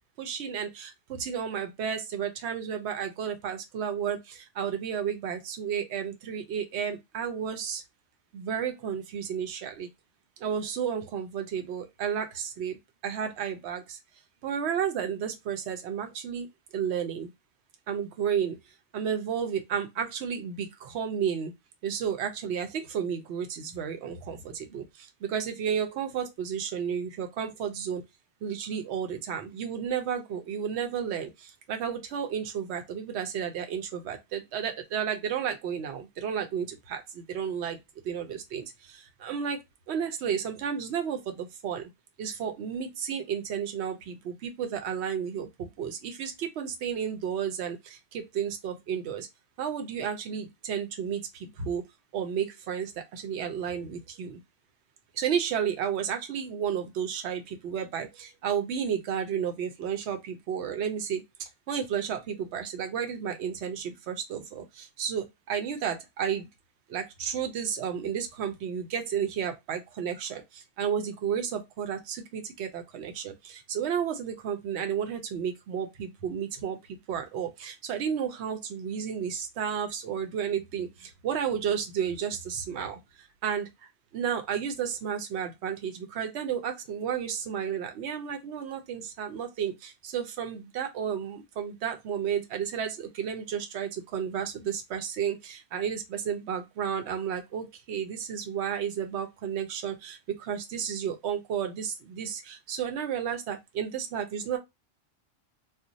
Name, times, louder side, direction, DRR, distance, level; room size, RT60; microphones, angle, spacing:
voice 1, 0.2-7.8 8.3-9.9 10.4-12.8 13.0-14.0 14.4-16.5 16.7-17.3 17.9-21.5 21.8-28.0 28.4-37.8 38.0-39.6 39.9-41.9 42.2-49.3 49.6-51.8 52.1-54.4 55.1-66.5 66.9-104.6, right 8 dB, 85° right, 0.9 m, -32 dB
2.5 x 2.1 x 3.8 m
omnidirectional pair, 1.1 m